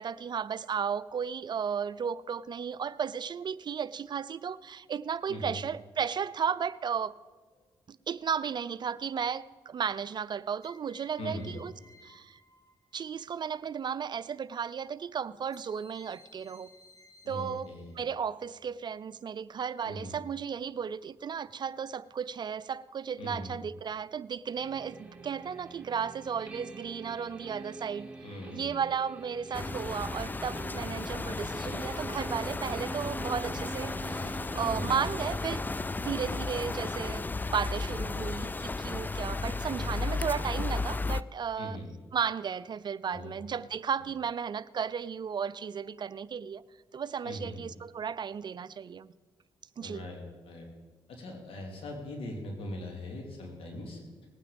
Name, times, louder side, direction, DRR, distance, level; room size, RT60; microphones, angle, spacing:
voice 1, 0.0-7.1 7.9-11.7 12.0-12.4 12.9-16.7 17.3-28.1 28.5-35.6 36.0-41.8 42.1-46.6 46.9-49.1 49.8-50.1, right 7 dB, 50° right, 17 dB, 0.5 m, -34 dB
sound 1, 7.5-8.1 10.6-13.3 15.5-18.1, left 2 dB, 40° left, 2.3 m, -59 dB
voice 2, 11.2-11.5 17.2-17.9 19.8-20.2 23.2-23.5 28.2-28.8 34.7-35.0 41.6-41.9 43.1-43.3 47.2-47.6 49.8-50.7 51.1-54.0, left 1 dB, 75° left, 2 dB, 3.0 m, -40 dB
sound 2, 24.5-35.8, right 3 dB, 15° right, 2.2 m, -45 dB
sound 3, 29.5-41.2, left 3 dB, 20° left, 0.4 m, -34 dB
19.0 x 9.1 x 5.2 m, 1.4 s
cardioid pair, 65°, 9 cm